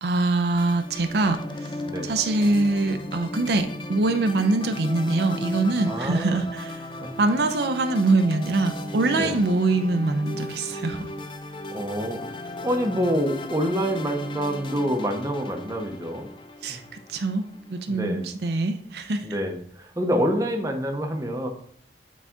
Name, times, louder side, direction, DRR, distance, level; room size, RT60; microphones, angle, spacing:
voice 1, 0.0-1.7 2.0-6.9 7.2-11.1 16.6-19.4, right 2 dB, 65° right, 7 dB, 0.6 m, -24 dB
sound 1, 0.6-18.0, left 1 dB, 30° left, 0.4 m, -36 dB
voice 2, 5.9-6.4 9.2-9.3 11.7-16.3 16.7-16.8 17.9-18.2 19.2-21.5, equal, 20° right, 3 dB, 0.7 m, -27 dB
8.4 x 4.0 x 3.6 m, 0.63 s
head